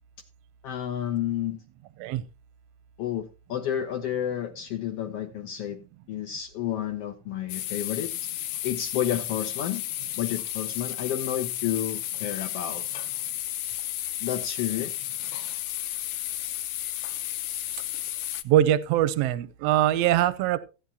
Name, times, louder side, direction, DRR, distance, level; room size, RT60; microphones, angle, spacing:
voice 1, 0.6-1.6 3.0-5.8 6.1-8.1 8.6-9.8 10.2-12.8 14.2-14.9, left 10 dB, 70° left, 1.5 m, -30 dB
sound 1, 7.5-18.4, left 13 dB, 90° left, 2.3 m, -33 dB
voice 2, 18.4-20.6, right 12 dB, 75° right, 1.6 m, -22 dB
15.5 x 9.5 x 2.8 m
omnidirectional pair, 3.5 m